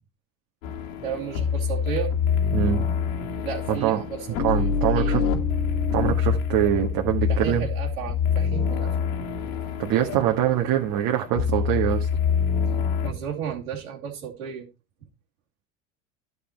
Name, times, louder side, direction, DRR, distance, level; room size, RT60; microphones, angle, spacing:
sound 1, 0.6-13.1, left 6 dB, 80° left, 2.2 m, -26 dB
voice 1, 1.0-2.1 3.4-5.2 7.3-9.1 13.0-14.7, right 8 dB, 90° right, 2.8 m, -33 dB
voice 2, 2.5-2.9 3.7-4.0 4.4-5.2 5.9-7.6 9.8-12.1, right 11 dB, 55° right, 1.8 m, -23 dB
12.0 x 5.8 x 4.5 m
hypercardioid pair, 95°, 40 cm